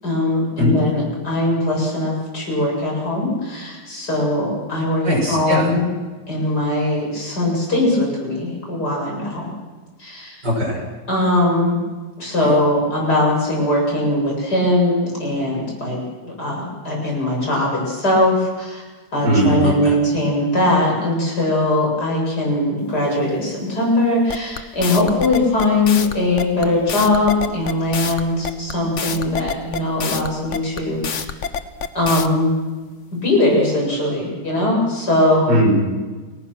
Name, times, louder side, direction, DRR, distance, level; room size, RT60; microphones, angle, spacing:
voice 1, 0.0-5.9 6.3-9.5 10.0-10.4 11.1-11.8 12.2-18.8 19.1-31.3 31.9-32.5 33.1-35.5, left 1 dB, 70° left, -2 dB, 8.4 m, -20 dB
voice 2, 5.0-5.7 10.4-10.8 19.2-20.0 35.5-35.9, equal, 80° right, 0 dB, 6.8 m, -19 dB
sound 1, 24.3-32.3, left 6 dB, 50° left, 1.3 m, -27 dB
29.5 x 20.0 x 6.1 m, 1.3 s
omnidirectional pair, 1.8 m